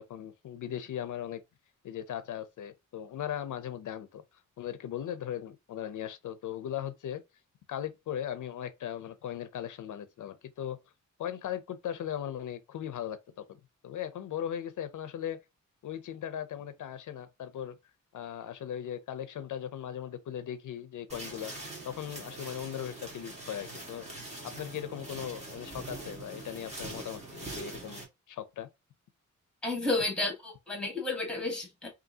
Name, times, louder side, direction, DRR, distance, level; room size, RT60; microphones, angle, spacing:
voice 1, 0.0-1.4 1.8-4.2 4.6-7.2 7.7-10.8 11.2-15.4 15.8-17.8 18.1-21.5 21.8-24.1 24.4-28.7, left 10 dB, 70° left, 0.5 m, -38 dB
sound 1, 21.1-28.0, right 2 dB, 20° right, 1.5 m, -43 dB
voice 2, 29.6-31.9, left 2 dB, 5° left, 1.5 m, -32 dB
5.2 x 2.7 x 2.7 m
wide cardioid pair, 155°, 31 cm